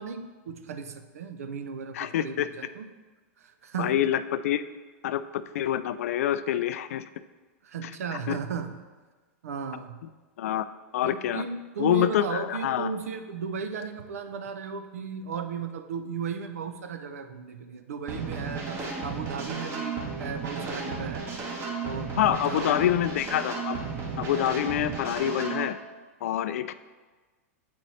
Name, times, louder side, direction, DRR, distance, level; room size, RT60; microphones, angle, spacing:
voice 1, 0.0-2.9 3.4-3.9 7.6-8.7 9.4-10.0 11.0-18.7 19.0-21.3 21.8-22.8, right 6 dB, 85° right, 8 dB, 0.6 m, -35 dB
voice 2, 1.9-2.5 3.8-4.6 5.0-7.1 7.8-7.9 8.3-8.4 10.4-10.7 10.9-11.4 11.8-12.9 22.2-23.8 24.2-25.8 26.2-26.7, left 11 dB, 75° left, 13 dB, 0.4 m, -26 dB
sound 1, 18.1-25.6, right 4 dB, 35° right, 1.3 m, -34 dB
7.6 x 4.2 x 4.1 m, 1.3 s
hypercardioid pair, 115°, 8 cm